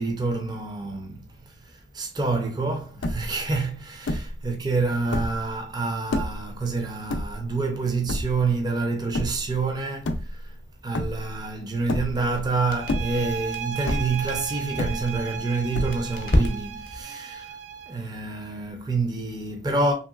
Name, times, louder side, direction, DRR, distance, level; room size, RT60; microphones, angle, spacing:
voice 1, 0.0-1.3 1.7-10.5 10.8-17.6 17.9-19.9, right 3 dB, 20° right, 0.5 m, -27 dB
sound 1, 3.0-3.5 4.1-4.5 5.0-5.5 6.1-6.5 7.1-7.7 8.1-8.5 9.1-9.5 9.9-10.6 10.9-11.5 11.9-12.4 12.8-13.4 13.9-14.3 14.8-15.4 15.7-16.3, left 1 dB, 90° left, 0.4 m, -29 dB
Crackle, 11.7-17.0, left 1 dB, 45° left, 0.6 m, -31 dB
sound 2, 12.8-18.0, right 8 dB, 80° right, 0.5 m, -35 dB
3.0 x 2.8 x 2.3 m
head